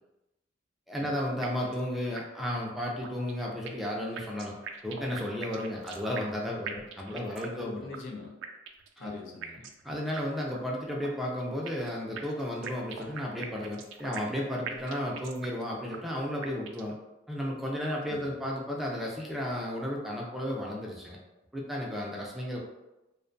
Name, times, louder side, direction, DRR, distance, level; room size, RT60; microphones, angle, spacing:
voice 1, 0.9-4.5 4.8-7.8 9.0-9.1 9.8-16.9 17.3-21.2 21.5-22.6, equal, ahead, -3 dB, 0.3 m, -33 dB
sound 1, 1.4-1.8 2.2-2.3 2.5-2.6 3.0-3.9 4.2-6.4 6.7-7.6 7.9-8.0 8.4-8.9 9.4-9.8 10.2-10.3 10.5-10.6 11.0-11.9 12.2-14.4 14.7-15.6 15.9-16.0 16.4-16.9, right 7 dB, 80° right, 0.3 m, -41 dB
voice 2, 7.5-8.4 9.0-9.7 18.1-18.4, left 4 dB, 85° left, 1 dB, 0.5 m, -44 dB
2.5 x 2.2 x 2.5 m, 0.98 s
head